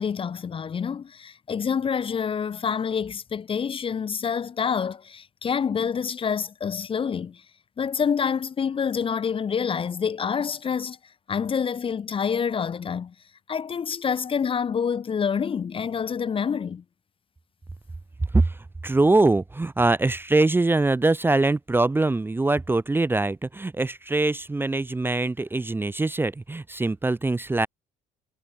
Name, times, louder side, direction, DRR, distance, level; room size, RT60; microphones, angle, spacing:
voice 1, 0.0-7.4 7.8-11.0 11.3-13.1 13.5-16.8, left 6 dB, 30° left, 0.7 m, -27 dB
voice 2, 18.8-27.7, right 2 dB, 15° right, 0.7 m, -23 dB
cardioid pair, 110°, 17 cm